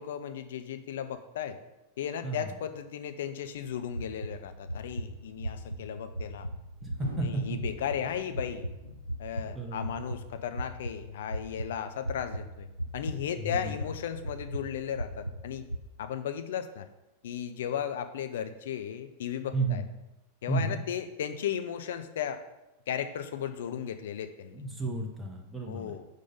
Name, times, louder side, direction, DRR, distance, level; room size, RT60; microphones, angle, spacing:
voice 1, 0.0-1.6 2.0-6.5 7.2-8.7 9.2-12.7 12.9-15.6 16.0-16.9 17.2-19.8 20.4-22.4 22.9-24.6 25.6-26.1, left 9 dB, 60° left, 9 dB, 0.5 m, -35 dB
voice 2, 2.2-2.6 6.8-7.4 9.5-9.9 13.4-13.8 19.5-19.8 20.5-20.8 24.5-26.0, right 3 dB, 10° right, 1 dB, 0.8 m, -32 dB
sound 1, 3.7-15.8, right 1 dB, 90° right, 0.3 m, -38 dB
sound 2, 7.0-10.6, left 1 dB, 85° left, 0.9 m, -47 dB
4.9 x 4.0 x 5.3 m, 0.98 s
figure-of-eight pair, 90°, 0 cm